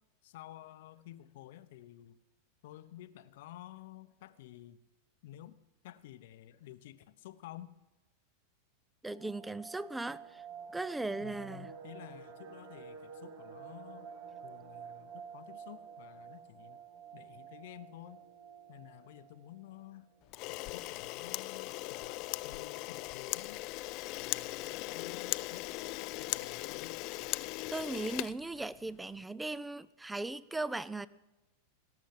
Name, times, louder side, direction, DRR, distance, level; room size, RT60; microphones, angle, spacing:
voice 1, 0.2-2.2 2.6-4.8 5.2-5.6 5.8-7.7 11.2-14.1 14.4-16.8 17.1-18.2 18.7-20.1 20.5-23.6 24.2-25.7 26.0-27.0, left 14 dB, 70° left, 0.8 m, -52 dB
voice 2, 9.0-10.4 10.7-11.7 27.7-31.1, right 2 dB, 10° right, 0.5 m, -38 dB
sound 1, 9.1-19.9 20.1-20.2 20.6-20.8 21.2-21.7 22.2-22.3 22.4-23.0 23.3-23.4, right 7 dB, 60° right, 1.9 m, -50 dB
Camera, 20.3-29.0, left 21 dB, 50° left, 0.4 m, -39 dB
18.0 x 6.9 x 7.6 m
hypercardioid pair, 115°, 0 cm